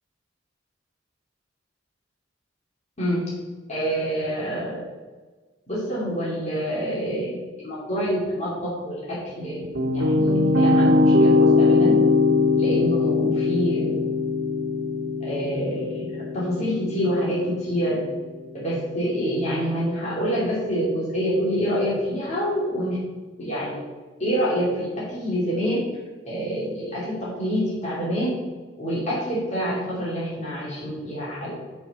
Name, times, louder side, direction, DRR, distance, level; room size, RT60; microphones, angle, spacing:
voice 1, 3.0-3.3 3.7-4.8 5.7-7.3 7.6-8.9 9.4-12.0 12.6-14.0 15.2-18.0 18.5-23.0 23.4-23.8 24.2-25.8 26.3-28.4 28.8-31.5, equal, 35° left, -8 dB, 2.7 m, -26 dB
sound 1, 9.4-18.5, left 3 dB, 75° right, 1.6 m, -21 dB
7.1 x 6.8 x 5.4 m, 1.3 s
head